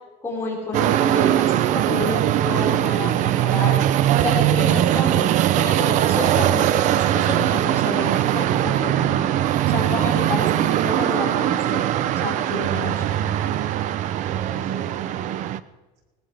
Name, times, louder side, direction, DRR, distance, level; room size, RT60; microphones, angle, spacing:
voice 1, 0.2-3.8 4.2-5.3 5.6-9.3 9.7-11.8 12.2-13.5, left 2 dB, 15° left, -4 dB, 4.8 m, -30 dB
sound 1, 0.7-15.6, right 12 dB, 45° right, 0.5 m, -21 dB
voice 2, 12.6-13.2 14.2-15.4, right 4 dB, 80° right, 0 dB, 3.7 m, -39 dB
20.5 x 20.0 x 3.4 m, 1.1 s
cardioid pair, 180°, 17 cm